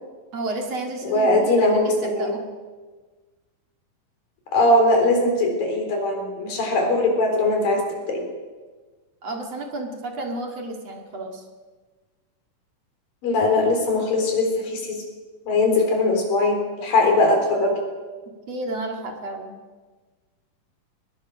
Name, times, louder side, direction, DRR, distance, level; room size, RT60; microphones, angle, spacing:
voice 1, 0.3-2.4 9.2-11.4 18.5-19.6, right 2 dB, 50° right, 3 dB, 3.0 m, -31 dB
voice 2, 1.1-2.3 4.5-8.2 13.2-15.0 15.5-17.8, left 2 dB, 80° left, 2 dB, 5.9 m, -20 dB
21.5 x 20.5 x 6.3 m, 1.3 s
omnidirectional pair, 4.0 m